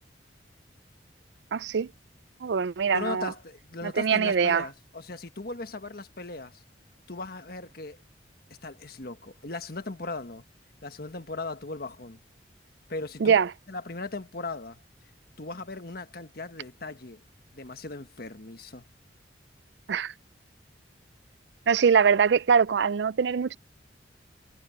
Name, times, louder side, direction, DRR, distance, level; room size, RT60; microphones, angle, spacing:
voice 1, 1.5-1.9 2.4-3.3 3.8-4.7 13.2-13.5 19.9-20.1 21.7-23.6, right 6 dB, 70° right, 0.4 m, -23 dB
voice 2, 2.9-6.6 7.1-8.0 8.6-10.4 10.8-12.2 12.9-13.4 13.7-14.8 15.4-17.2 17.5-18.8, left 3 dB, 55° left, 1.4 m, -38 dB
head